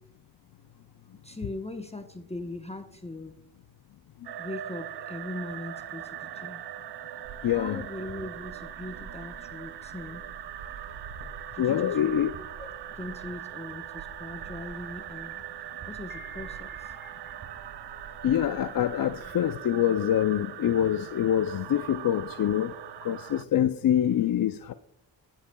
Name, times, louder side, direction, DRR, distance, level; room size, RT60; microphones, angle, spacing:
voice 1, 1.2-3.3 4.4-6.6 7.4-10.3 11.5-12.2 12.6-15.4 15.9-17.2, left 2 dB, 15° left, 7 dB, 0.9 m, -40 dB
sound 1, 4.2-23.4, right 12 dB, 60° right, 0.5 m, -41 dB
sound 2, 7.2-19.3, right 4 dB, 85° right, 1.3 m, -49 dB
voice 2, 7.4-7.8 11.6-12.3 16.1-16.6 17.0-17.1 18.2-22.7 23.0-24.7, left 10 dB, 50° left, 11 dB, 0.4 m, -25 dB
22.0 x 7.4 x 2.2 m, 0.73 s
cardioid pair, 45°, 46 cm